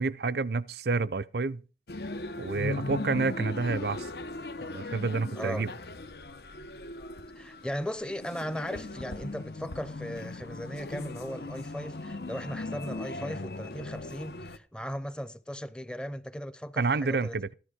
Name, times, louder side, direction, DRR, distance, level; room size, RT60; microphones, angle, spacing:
voice 1, 0.0-1.6 2.4-4.1 4.6-5.7 16.8-17.5, right 4 dB, 65° right, 0.6 m, -29 dB
sound 1, 1.9-14.6, left 2 dB, 65° left, 1.0 m, -38 dB
voice 2, 5.4-5.7 7.4-17.4, equal, 5° left, 0.7 m, -37 dB
14.5 x 11.0 x 5.1 m
head